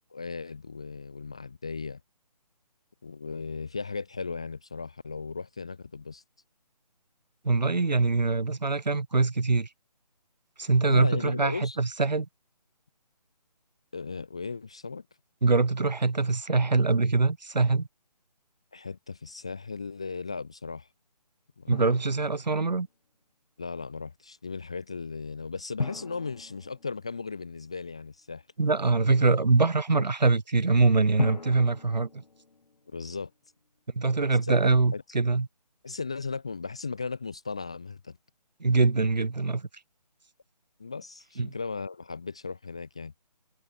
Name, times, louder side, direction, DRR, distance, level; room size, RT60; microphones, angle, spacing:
voice 1, 0.1-2.0 3.0-6.2 10.8-11.8 13.9-15.0 18.7-20.9 21.6-21.7 23.6-28.4 32.9-33.3 34.9-35.0 35.8-38.2 40.8-43.1, left 4 dB, 10° left, 0.5 m, -36 dB
voice 2, 7.4-9.7 10.6-12.3 15.4-17.9 21.7-22.9 28.6-32.2 33.9-35.5 38.6-39.7 41.4-41.5, right 3 dB, 85° right, 3.2 m, -24 dB
Drum, 21.7-22.8 25.8-27.6 31.2-33.2, left 3 dB, 75° left, 4.9 m, -37 dB
hypercardioid pair, 170°, 21 cm